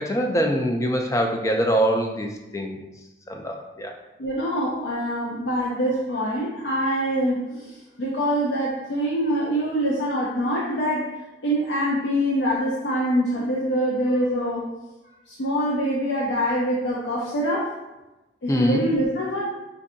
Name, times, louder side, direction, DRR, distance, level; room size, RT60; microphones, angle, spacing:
voice 1, 0.0-2.3 2.5-2.8 3.3-3.9 18.5-18.9, equal, 15° left, 2 dB, 0.3 m, -23 dB
voice 2, 4.2-11.1 11.4-14.7 15.3-17.7 18.4-19.5, equal, 80° left, -4 dB, 0.5 m, -24 dB
4.5 x 2.5 x 2.6 m, 1.0 s
head